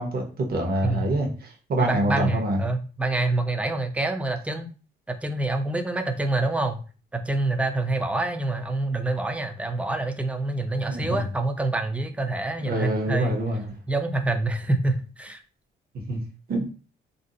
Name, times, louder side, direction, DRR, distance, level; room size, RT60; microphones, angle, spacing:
voice 1, 0.0-2.6 10.9-11.1 12.6-13.7 16.1-16.2 16.5-16.7, right 1 dB, 50° right, 1 dB, 0.9 m, -26 dB
voice 2, 1.8-4.7 5.1-6.8 7.1-13.4 13.9-15.4, right 2 dB, 5° right, 6 dB, 0.4 m, -26 dB
2.6 x 2.0 x 3.8 m, 0.36 s
cardioid pair, 90°, 20 cm